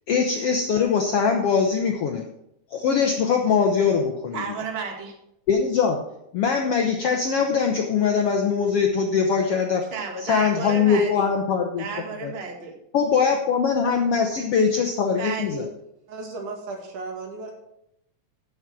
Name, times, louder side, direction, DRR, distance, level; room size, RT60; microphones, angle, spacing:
voice 1, 0.1-2.2 2.7-4.4 5.5-6.0 6.3-9.8 10.2-11.8 12.2-12.3 12.9-15.7, left 6 dB, 70° left, 3 dB, 1.4 m, -22 dB
voice 2, 4.3-5.1 9.9-11.3 11.8-12.7 15.2-15.6, right 5 dB, 25° right, 2 dB, 1.3 m, -32 dB
voice 3, 16.1-17.5, right 3 dB, 70° right, 2 dB, 3.4 m, -35 dB
12.5 x 6.4 x 5.9 m, 0.79 s
omnidirectional pair, 3.8 m